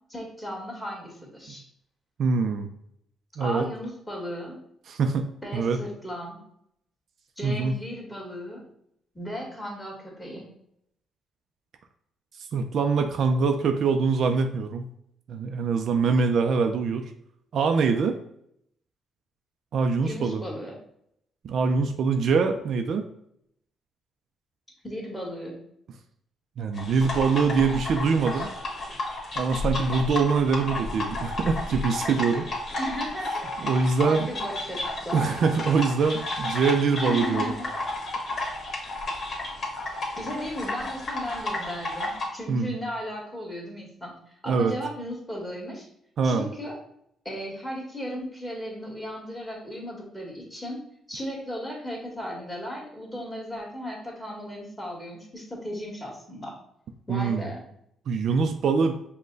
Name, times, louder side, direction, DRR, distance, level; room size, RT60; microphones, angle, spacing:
voice 1, 0.1-1.6 3.4-4.6 5.4-6.4 7.4-8.6 9.1-10.5 20.0-20.8 24.8-25.6 32.8-35.2 37.0-37.6 40.2-45.9 46.2-46.8 47.2-50.8 51.1-56.5 57.1-57.6, equal, 10° left, -3 dB, 1.7 m, -36 dB
voice 2, 2.2-2.7 3.4-3.7 4.9-5.8 7.4-7.7 12.5-14.9 15.3-17.1 17.5-18.2 19.7-20.4 21.4-23.0 26.6-28.5 29.4-32.5 33.6-34.3 35.1-37.5 42.5-42.8 44.5-44.7 46.2-46.5 57.1-57.5 58.1-59.0, right 5 dB, 65° right, 6 dB, 0.4 m, -24 dB
sound 1, 26.7-42.2, left 2 dB, 45° left, 1.5 m, -32 dB
5.4 x 2.2 x 3.8 m, 0.73 s
cardioid pair, 90°, 0 cm